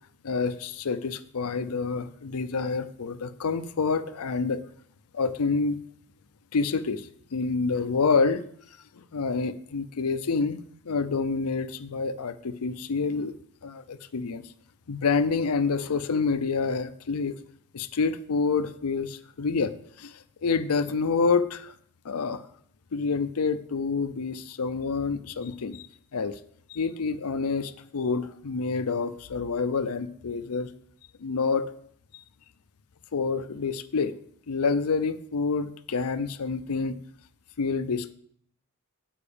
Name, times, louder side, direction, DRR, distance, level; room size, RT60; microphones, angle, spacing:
voice 1, 0.2-4.6 5.1-5.8 6.5-8.4 9.0-13.3 13.6-14.4 14.9-17.3 17.7-21.7 22.0-22.4 22.9-25.9 26.1-26.4 26.7-30.7 31.2-31.7 33.1-34.1 34.5-37.0 37.6-38.1, left 4 dB, 80° left, 11 dB, 0.6 m, -28 dB
8.9 x 4.9 x 6.8 m, 0.64 s
head